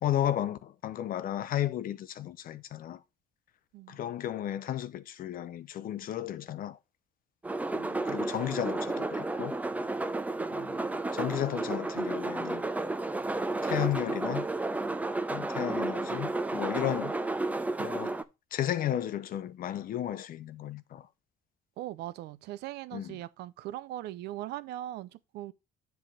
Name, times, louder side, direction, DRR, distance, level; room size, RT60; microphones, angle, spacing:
voice 1, 0.0-3.0 3.9-6.8 7.7-9.6 10.5-10.8 11.1-12.6 13.6-14.5 15.3-17.2 17.8-18.2 18.5-21.1 22.9-23.2, left 11 dB, 55° left, 0.7 m, -33 dB
sound 1, 7.4-18.2, right 2 dB, 10° right, 0.5 m, -32 dB
voice 2, 21.8-25.5, right 14 dB, 80° right, 0.6 m, -40 dB
7.6 x 3.5 x 5.8 m
cardioid pair, 110°, 17 cm